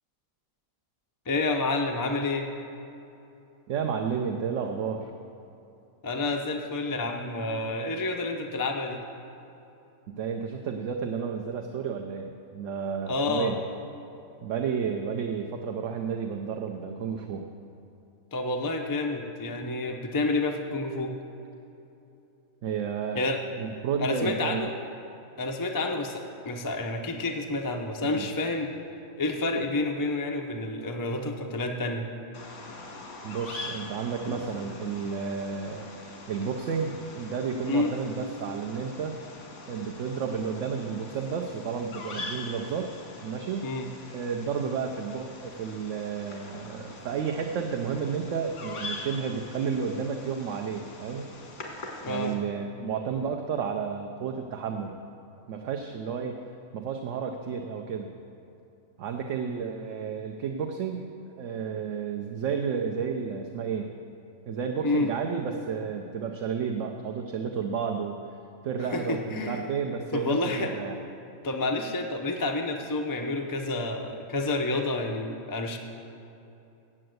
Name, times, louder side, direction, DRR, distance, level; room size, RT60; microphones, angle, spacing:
voice 1, 1.3-2.5 6.0-9.0 13.1-13.5 18.3-21.1 23.1-23.4 24.0-24.7 25.4-28.7 29.2-32.1 37.7-37.9 43.6-43.9 52.0-52.3 64.8-65.1 68.9-69.6 70.1-70.7 71.4-75.8, left 2 dB, 30° left, 3 dB, 0.4 m, -29 dB
voice 2, 3.7-5.1 10.1-13.6 14.4-17.5 22.6-24.7 28.0-28.3 33.2-35.9 36.3-39.2 39.7-42.9 43.2-43.7 44.1-51.3 52.1-55.0 55.5-56.4 56.7-58.1 59.0-61.1 61.4-63.9 64.5-68.2 68.6-71.0, right 6 dB, 65° right, 4 dB, 0.9 m, -31 dB
Bird vocalization bird call bird song, 32.3-52.3, left 2 dB, 90° left, 1.9 m, -43 dB
8.7 x 7.6 x 7.8 m, 2.9 s
omnidirectional pair, 1.5 m